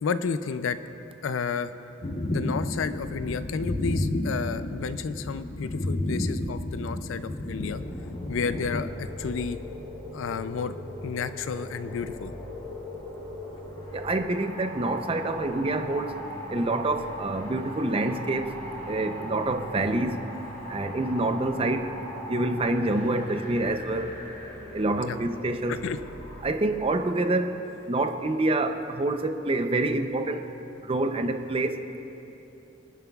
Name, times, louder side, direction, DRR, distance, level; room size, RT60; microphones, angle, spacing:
voice 1, 0.0-0.8 1.2-1.7 2.3-7.8 8.3-9.6 10.1-10.7 11.0-12.3 25.0-25.2 25.7-26.0, left 5 dB, 80° left, 12 dB, 0.4 m, -31 dB
sound 1, 2.0-8.9, left 1 dB, 35° left, 0.6 m, -31 dB
sound 2, 7.5-26.4, equal, 15° left, 3.0 m, -40 dB
voice 2, 13.9-16.2 16.5-18.5 18.9-20.2 20.7-21.9 22.3-24.1 24.7-25.8 26.4-27.6 27.9-30.4 30.8-31.8, right 2 dB, 30° right, 7 dB, 0.5 m, -27 dB
25.5 x 9.1 x 2.3 m, 2.9 s
head